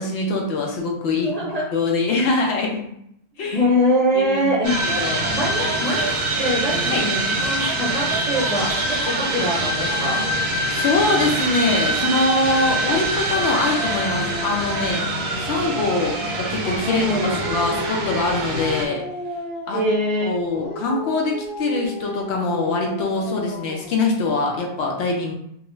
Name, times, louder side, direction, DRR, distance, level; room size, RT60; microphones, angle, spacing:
voice 1, 0.0-2.8 3.4-3.6 4.1-4.5 4.8-5.2 6.9-7.1 10.7-17.0 17.3-19.0 19.7-19.8 20.2-25.3, left 3 dB, 85° left, 0 dB, 0.9 m, -23 dB
voice 2, 1.2-1.7 3.5-4.8 5.3-10.3 14.4-14.6 16.8-17.5 19.7-20.4, equal, 45° right, -6 dB, 0.6 m, -23 dB
sound 1, 4.6-18.9, right 1 dB, 80° right, 0.8 m, -24 dB
Dog, 13.7-16.5 17.0-20.1 20.5-24.0, left 1 dB, 55° left, 1.0 m, -33 dB
2.4 x 2.3 x 3.0 m, 0.74 s
omnidirectional pair, 1.1 m